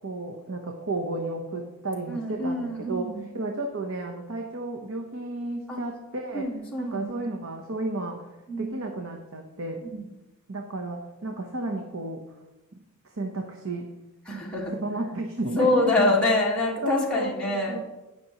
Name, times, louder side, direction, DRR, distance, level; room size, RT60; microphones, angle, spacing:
voice 1, 0.0-6.5 6.8-8.2 8.6-9.8 10.5-12.2 13.1-13.9 14.7-16.2 16.8-17.8, right 2 dB, 65° right, 2 dB, 1.0 m, -32 dB
voice 2, 2.1-3.2 5.7-5.8 6.3-7.1 8.5-8.9 9.8-10.0 14.3-14.7 15.6-17.8, left 1 dB, 5° left, -5 dB, 1.6 m, -26 dB
18.5 x 6.1 x 3.0 m, 1.0 s
head